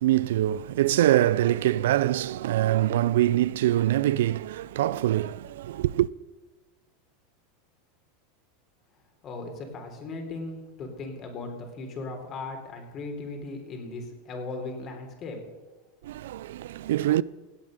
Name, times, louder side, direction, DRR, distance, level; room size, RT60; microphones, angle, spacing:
voice 1, 0.0-6.1 16.0-17.2, right 13 dB, 75° right, 0.3 m, -24 dB
voice 2, 9.2-15.4, left 3 dB, 40° left, 3.9 m, -37 dB
17.0 x 8.6 x 6.6 m
hypercardioid pair, 100°, 0 cm